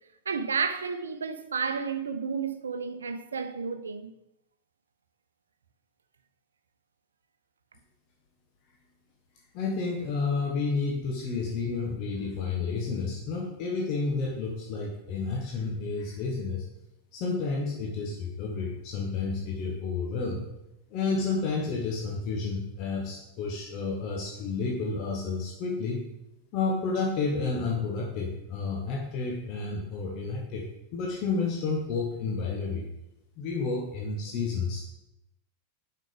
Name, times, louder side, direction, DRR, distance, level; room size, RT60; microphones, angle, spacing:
voice 1, 0.3-4.1, right 5 dB, 70° right, 0.6 m, -31 dB
voice 2, 9.5-16.7 17.1-20.5 20.9-26.0 26.5-30.7 30.9-32.8 33.4-34.8, left 4 dB, 40° left, 1.3 m, -30 dB
7.7 x 5.8 x 5.1 m
figure-of-eight pair, 90°, 0 cm